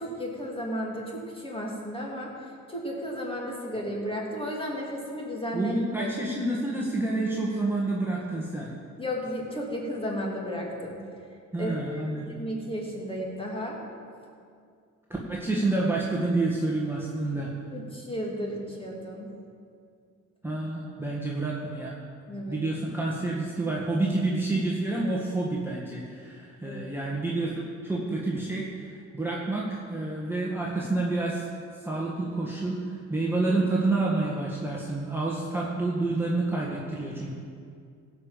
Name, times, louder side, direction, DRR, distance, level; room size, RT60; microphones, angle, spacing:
voice 1, 0.0-2.3 2.7-6.1 9.0-11.0 11.6-11.7 12.2-13.8 17.7-19.3 22.3-22.6 26.6-26.8, equal, 20° left, -2 dB, 2.9 m, -33 dB
voice 2, 5.5-8.7 11.5-12.4 15.3-17.5 20.4-22.0 22.5-31.4 31.8-37.3, right 2 dB, 5° right, -5 dB, 1.7 m, -28 dB
16.0 x 5.5 x 7.5 m, 2.3 s
cardioid pair, 90°, 30 cm